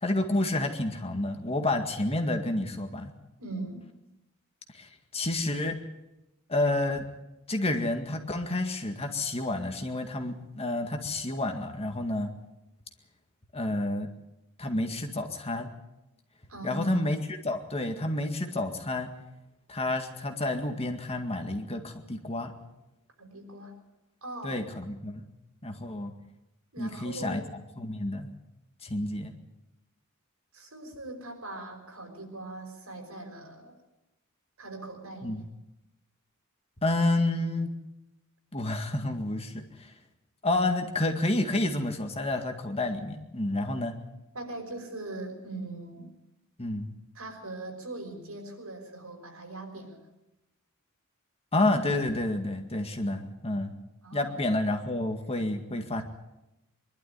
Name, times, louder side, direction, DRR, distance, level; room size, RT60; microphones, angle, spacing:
voice 1, 0.0-3.1 4.7-5.8 6.5-7.0 7.5-12.3 13.5-14.1 14.6-15.7 16.6-19.1 19.7-22.5 24.4-25.3 25.6-26.1 26.8-27.4 27.8-28.3 28.8-29.3 35.2-35.5 36.8-37.7 38.5-39.9 40.4-44.0 46.6-46.9 51.5-53.7 54.1-56.0, left 2 dB, 30° left, 5 dB, 2.0 m, -29 dB
voice 2, 3.4-3.9 16.5-17.1 23.2-23.8 24.2-24.6 26.7-27.4 30.5-33.8 34.6-35.5 44.3-46.1 47.1-50.1 54.0-54.4, right 2 dB, 85° right, 3 dB, 5.5 m, -41 dB
23.0 x 12.0 x 10.0 m, 0.96 s
head